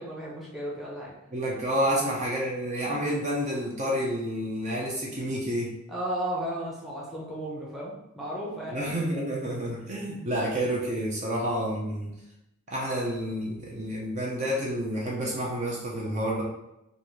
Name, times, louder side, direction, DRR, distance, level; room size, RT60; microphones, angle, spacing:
voice 1, 0.0-1.1 1.9-2.1 5.9-8.8, right 1 dB, ahead, -5 dB, 0.8 m, -34 dB
voice 2, 1.3-5.7 8.7-12.1 12.7-16.4, equal, 30° right, -4 dB, 0.7 m, -29 dB
3.6 x 2.6 x 3.2 m, 0.86 s
head